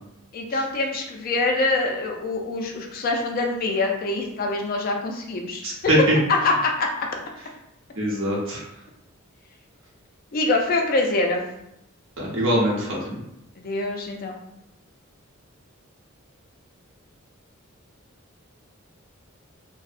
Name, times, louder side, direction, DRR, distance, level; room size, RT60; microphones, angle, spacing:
voice 1, 0.3-5.6 6.4-6.9 10.3-11.4 13.6-14.3, left 2 dB, 45° left, 2 dB, 0.3 m, -24 dB
voice 2, 5.6-6.2 8.0-8.6 12.2-13.2, equal, 70° right, -4 dB, 0.8 m, -22 dB
2.6 x 2.0 x 2.4 m, 0.82 s
head